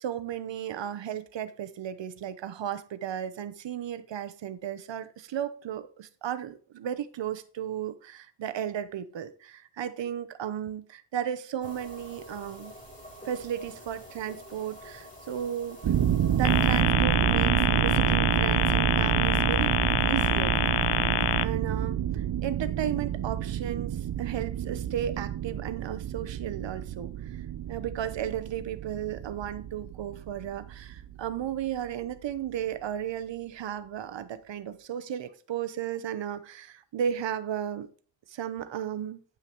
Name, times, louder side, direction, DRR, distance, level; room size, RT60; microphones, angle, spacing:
voice 1, 0.0-12.7 13.2-15.8 16.3-19.7 20.0-20.7 21.4-37.9 38.3-39.2, right 10 dB, 80° right, 0.9 m, -34 dB
sound 1, 11.6-16.8, equal, 15° left, 3.7 m, -47 dB
sound 2, 15.8-31.6, right 10 dB, 55° right, 0.7 m, -29 dB
sound 3, 16.4-21.4, left 10 dB, 65° left, 0.7 m, -26 dB
9.6 x 5.8 x 4.4 m
wide cardioid pair, 95°, 43 cm